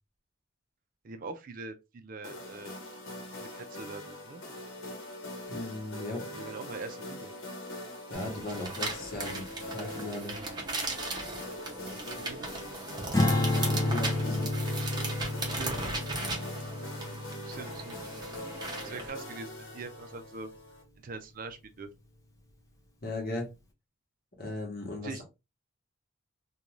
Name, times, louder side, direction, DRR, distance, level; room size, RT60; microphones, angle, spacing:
voice 1, 1.0-2.8 3.3-4.4 6.3-7.3 12.1-12.6 15.4-15.8 17.4-18.2 18.6-20.5 21.0-21.9 25.0-25.2, right 4 dB, 45° right, 0.4 m, -43 dB
sound 1, 2.2-20.8, left 1 dB, 90° left, 0.9 m, -43 dB
voice 2, 5.5-6.2 8.1-10.4 13.6-14.5 23.0-23.5 24.4-25.2, left 2 dB, 50° left, 1.0 m, -37 dB
sound 2, 8.1-19.1, right 2 dB, 20° right, 0.8 m, -38 dB
Strum, 13.1-19.5, left 2 dB, 15° left, 0.6 m, -31 dB
2.5 x 2.3 x 3.0 m
head